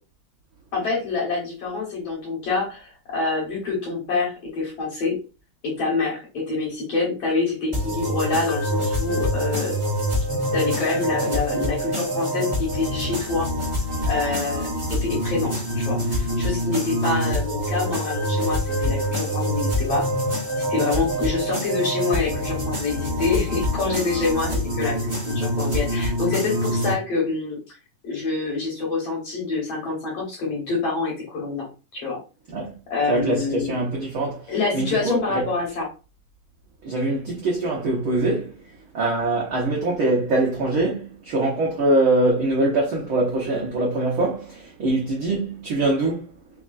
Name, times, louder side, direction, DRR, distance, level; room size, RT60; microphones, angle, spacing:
voice 1, 0.7-5.2 5.6-9.7 10.5-13.5 14.1-14.7 15.0-20.1 20.6-27.8 28.0-32.2 32.9-33.7 34.5-35.9, left 4 dB, 55° left, 2.0 m, -26 dB
sound 1, 7.7-26.9, equal, 20° right, 0.9 m, -25 dB
voice 2, 33.1-34.4 34.7-35.5 36.8-38.5 38.9-46.3, right 2 dB, 90° right, 1.1 m, -23 dB
5.1 x 3.6 x 2.5 m
omnidirectional pair, 4.1 m